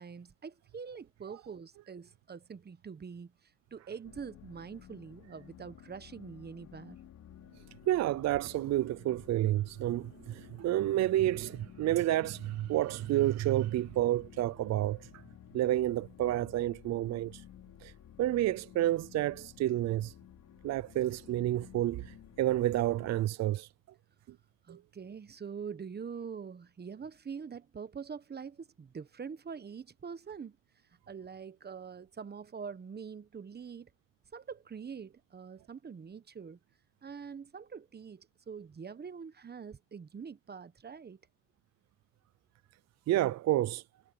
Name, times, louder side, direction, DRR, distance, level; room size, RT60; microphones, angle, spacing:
voice 1, 0.0-3.3 3.7-7.0 24.7-30.6 31.1-33.9 34.3-36.6 37.0-41.2, right 6 dB, 35° right, 1.1 m, -44 dB
sound 1, 4.0-23.2, left 11 dB, 70° left, 4.8 m, -54 dB
voice 2, 7.9-15.2 15.5-17.4 17.8-17.9 18.2-20.1 20.6-23.7 24.7-24.8 43.1-43.8, right 14 dB, 60° right, 0.5 m, -30 dB
cardioid pair, 90°, 30 cm